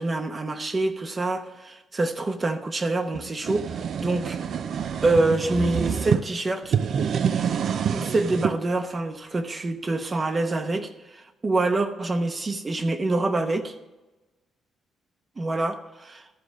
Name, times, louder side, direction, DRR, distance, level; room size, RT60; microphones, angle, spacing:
voice 1, 0.0-4.4 5.0-6.8 7.9-13.7 15.4-16.2, right 2 dB, 30° right, 9 dB, 0.9 m, -26 dB
sound 1, 3.1-6.2 6.6-8.6, right 7 dB, 60° right, 0.5 m, -26 dB
13.0 x 4.9 x 7.3 m, 1.1 s
cardioid pair, 90°, 0 cm